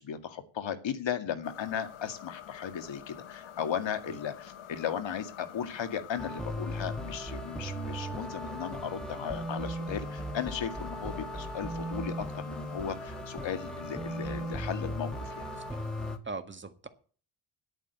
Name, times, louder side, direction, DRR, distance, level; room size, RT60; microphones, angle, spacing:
voice 1, 0.0-15.5, left 8 dB, 60° left, 9 dB, 2.1 m, -36 dB
sound 1, 1.4-16.2, left 10 dB, 85° left, 1.6 m, -47 dB
sound 2, 6.2-16.2, right 1 dB, ahead, 1.7 m, -37 dB
voice 2, 16.2-16.9, right 3 dB, 20° right, 9 dB, 1.7 m, -41 dB
9.7 x 9.1 x 8.1 m, 0.41 s
cardioid pair, 100°, 50 cm